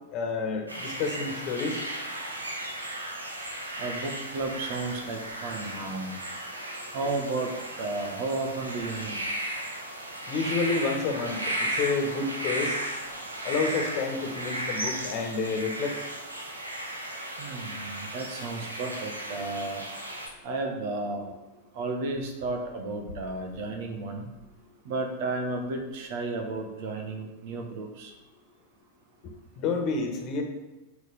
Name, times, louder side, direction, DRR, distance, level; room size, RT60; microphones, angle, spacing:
voice 1, 0.1-1.8 6.7-7.0 10.3-12.8 13.4-16.0 29.2-30.4, left 4 dB, 40° left, 3 dB, 1.7 m, -29 dB
sound 1, 0.7-20.3, right 1 dB, 80° right, 1.6 m, -35 dB
voice 2, 3.8-6.2 6.9-7.5 7.8-9.2 17.4-19.8 20.4-21.2 21.7-24.3 24.8-28.1, right 3 dB, 50° right, 3 dB, 1.6 m, -33 dB
7.2 x 6.5 x 5.4 m, 1.1 s
figure-of-eight pair, 90°, 0 cm